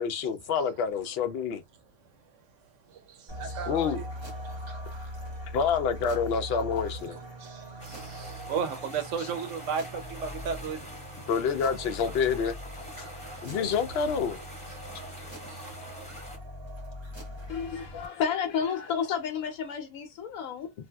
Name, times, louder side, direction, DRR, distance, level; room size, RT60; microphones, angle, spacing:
voice 1, 0.0-1.6 3.7-4.0 5.5-7.2 9.2-9.3 11.3-12.6 13.4-14.4, left 6 dB, 65° left, 0.7 m, -27 dB
voice 2, 2.9-4.1 6.6-6.7 7.4-10.9 15.2-15.7, right 6 dB, 65° right, 0.9 m, -35 dB
sound 1, 3.3-18.1, equal, 25° right, 0.7 m, -41 dB
sound 2, 7.8-16.4, equal, 5° left, 1.0 m, -45 dB
voice 3, 17.5-20.7, left 7 dB, 90° left, 1.1 m, -31 dB
3.3 x 2.5 x 2.2 m
omnidirectional pair, 1.4 m